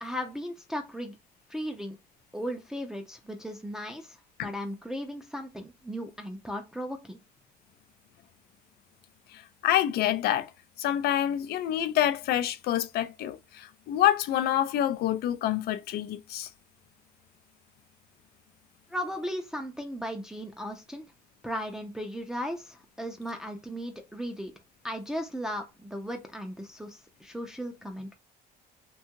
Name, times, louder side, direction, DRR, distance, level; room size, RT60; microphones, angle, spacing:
voice 1, 0.0-1.2 1.5-2.0 2.3-7.2 18.9-21.0 21.4-24.5 24.8-28.1, equal, 5° right, 0.4 m, -36 dB
voice 2, 9.3-10.5 10.8-16.5, left 12 dB, 70° left, 0.4 m, -27 dB
2.7 x 2.3 x 2.8 m
cardioid pair, 110°, 17 cm